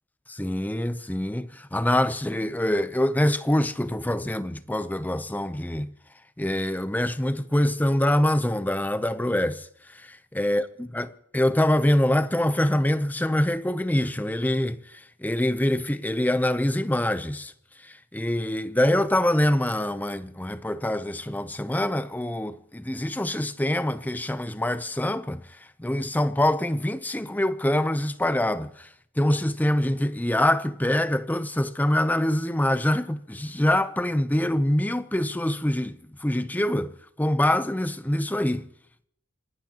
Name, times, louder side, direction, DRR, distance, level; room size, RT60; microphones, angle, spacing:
voice 1, 0.3-5.9 6.4-9.7 9.9-11.1 11.3-17.5 17.8-25.4 25.8-28.9 29.2-36.0 36.2-36.9 37.2-38.6, left 1 dB, 10° left, 0.5 m, -25 dB
27.5 x 18.0 x 2.9 m
head